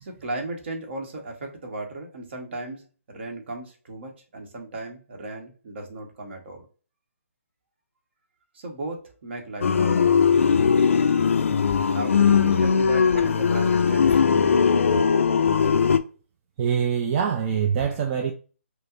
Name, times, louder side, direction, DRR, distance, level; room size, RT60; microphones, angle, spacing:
voice 1, 0.0-2.8 3.1-6.7 8.5-10.0 11.9-14.2, right 2 dB, 50° right, 1.1 m, -36 dB
sound 1, 9.6-16.0, left 6 dB, 65° left, 0.4 m, -19 dB
voice 2, 16.6-18.3, right 7 dB, 25° right, 0.4 m, -24 dB
5.2 x 2.0 x 2.4 m
figure-of-eight pair, 150°, 8 cm